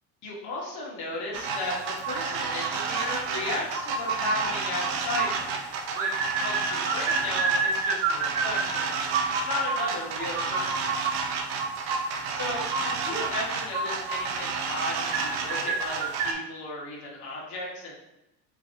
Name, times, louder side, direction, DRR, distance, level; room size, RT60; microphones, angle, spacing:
voice 1, 0.2-6.1 6.4-10.9 12.3-18.0, left 2 dB, 50° left, -4 dB, 1.5 m, -35 dB
sound 1, 1.3-16.3, right 4 dB, 75° right, 0.7 m, -29 dB
5.1 x 3.4 x 2.6 m, 0.92 s
cardioid pair, 170°, 38 cm